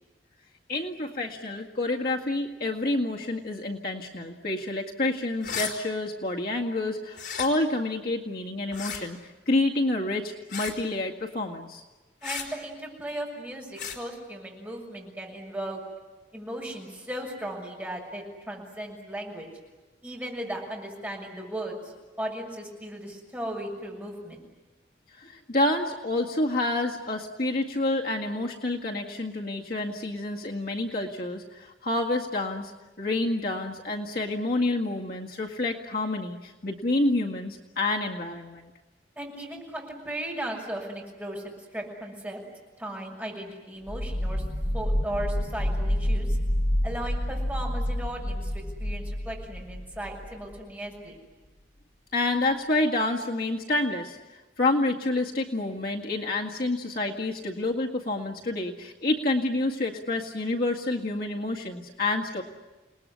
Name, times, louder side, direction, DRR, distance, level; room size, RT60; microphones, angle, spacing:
voice 1, 0.7-11.8 25.2-32.7 33.0-38.7 52.1-54.2 54.6-62.4, left 2 dB, 50° left, 0 dB, 2.0 m, -28 dB
sound 1, 5.4-5.7 7.1-7.5 8.7-9.0 10.5-10.8 12.2-12.5 13.8-14.0, left 7 dB, 70° left, 4.3 m, -34 dB
voice 2, 12.2-15.8 16.3-19.5 20.0-24.4 39.2-41.4 41.7-42.4 42.8-44.4 44.7-46.4 46.8-51.2, right 1 dB, 10° right, -2 dB, 6.6 m, -36 dB
sound 2, 43.9-50.6, equal, 35° left, 1.4 m, -28 dB
29.0 x 20.0 x 9.9 m, 1.2 s
head